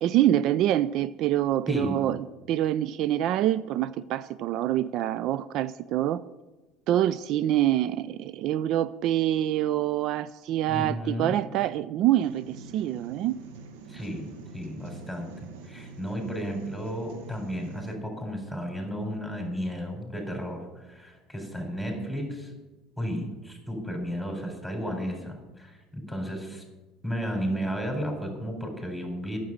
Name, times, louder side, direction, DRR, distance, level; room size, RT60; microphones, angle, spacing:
voice 1, 0.0-6.2 6.9-13.4, right 12 dB, 60° right, 16 dB, 0.3 m, -26 dB
voice 2, 1.7-2.0 10.7-11.4 13.9-15.3 15.6-22.5 23.0-26.6 27.0-29.4, equal, ahead, 2 dB, 3.9 m, -33 dB
sound 1, 12.2-18.0, right 4 dB, 80° right, 1.1 m, -45 dB
9.3 x 7.4 x 8.9 m, 1.1 s
hypercardioid pair, 80°, 0 cm